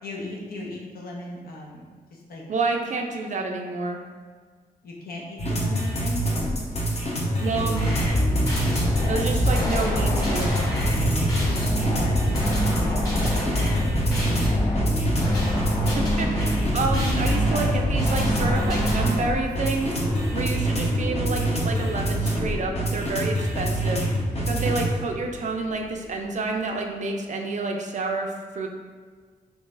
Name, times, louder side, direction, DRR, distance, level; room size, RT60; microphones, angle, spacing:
voice 1, 0.0-2.4 4.8-6.6 11.9-13.6 17.3-17.4, left 2 dB, 70° left, -2 dB, 0.8 m, -37 dB
voice 2, 2.5-4.0 7.4-7.8 9.1-10.6 15.9-24.1 24.4-28.7, right 3 dB, 50° right, 2 dB, 0.5 m, -29 dB
sound 1, 5.4-24.9, right 1 dB, 40° left, 0.8 m, -26 dB
sound 2, 7.8-19.1, left 1 dB, 20° left, 1.4 m, -25 dB
sound 3, 14.2-26.9, equal, 5° left, 0.5 m, -38 dB
3.8 x 3.3 x 2.5 m, 1.6 s
cardioid pair, 80°, 16 cm